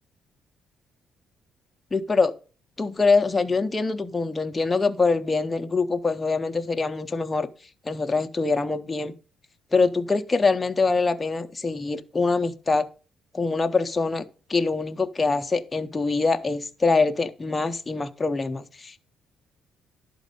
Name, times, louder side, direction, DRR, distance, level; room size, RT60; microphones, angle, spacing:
voice 1, 1.9-2.3 2.8-7.5 7.8-9.1 9.7-12.9 13.3-14.2 14.5-19.0, left 3 dB, 15° left, 0.5 m, -24 dB
11.0 x 4.1 x 5.3 m
cardioid pair, 150°, 0 cm